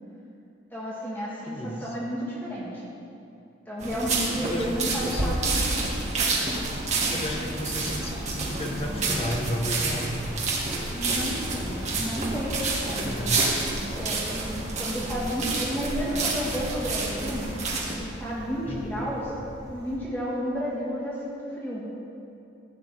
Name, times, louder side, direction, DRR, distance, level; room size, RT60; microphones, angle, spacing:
voice 1, 0.7-2.9 3.7-5.6 10.9-13.3 13.9-17.5 18.0-19.3 19.7-21.8, equal, 10° left, -7 dB, 1.6 m, -32 dB
voice 2, 1.5-2.0 4.4-5.4 7.1-10.1 13.0-13.5 18.6-19.0, equal, 30° left, 1 dB, 1.1 m, -33 dB
sound 1, 3.8-17.9, right 3 dB, 35° right, 1.6 m, -29 dB
sound 2, 8.7-20.0, equal, 20° right, 1.9 m, -42 dB
15.5 x 8.3 x 4.1 m, 2.6 s
head